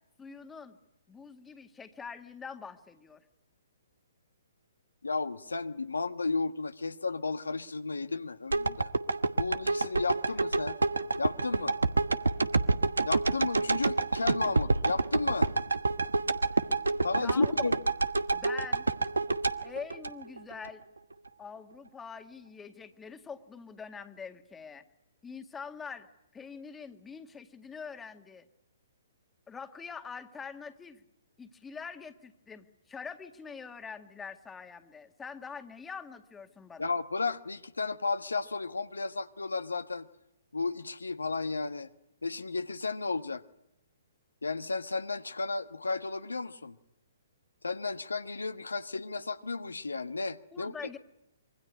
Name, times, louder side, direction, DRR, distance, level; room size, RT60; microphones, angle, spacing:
voice 1, 0.2-0.8 1.1-3.2 17.1-17.5 18.3-18.9 19.6-20.8 21.4-24.8 25.2-26.1 26.3-28.5 29.5-31.0 31.4-36.9 50.5-51.0, left 5 dB, 10° left, 1.9 m, -44 dB
voice 2, 5.0-8.9 9.4-10.8 11.2-11.8 13.0-15.5 17.0-17.8 36.8-40.1 40.5-41.9 42.2-43.4 44.4-46.8 47.6-50.7, left 3 dB, 80° left, 1.3 m, -33 dB
sound 1, 8.5-20.7 21.1-21.2, right 3 dB, 85° right, 1.2 m, -28 dB
26.0 x 23.5 x 9.7 m
figure-of-eight pair, 125°, 0 cm